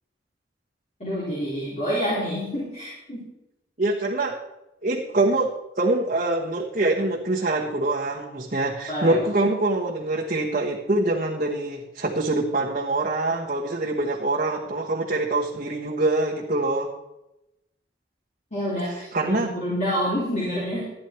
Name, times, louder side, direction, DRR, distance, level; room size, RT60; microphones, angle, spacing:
voice 1, 1.0-3.3 8.9-9.2 18.5-20.9, equal, 40° left, -7 dB, 3.7 m, -28 dB
voice 2, 3.8-4.4 4.8-16.9 19.1-19.5, right 2 dB, 45° right, -3 dB, 1.2 m, -24 dB
13.5 x 10.0 x 4.4 m, 0.92 s
head